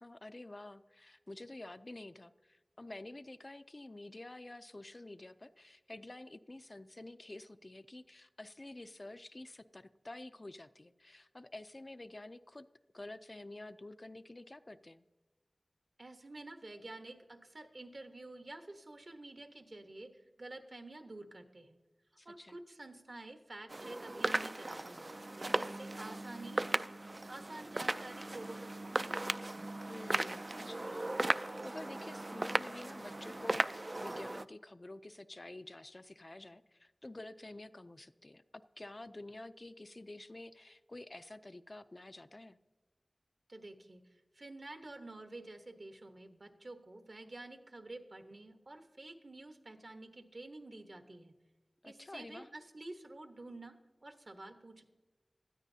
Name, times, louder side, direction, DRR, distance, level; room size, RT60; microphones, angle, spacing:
voice 1, 0.0-12.7 12.9-15.0 22.2-22.6 29.9-42.6 51.8-52.5, left 2 dB, 45° left, 11 dB, 0.4 m, -49 dB
voice 2, 16.0-21.8 22.2-29.2 43.5-51.3 51.8-53.8 54.0-54.8, right 2 dB, 65° right, 6 dB, 1.1 m, -50 dB
sound 1, 23.7-34.5, right 2 dB, 45° right, 0.3 m, -37 dB
19.0 x 13.0 x 2.7 m, 1.2 s
wide cardioid pair, 55°, 0 cm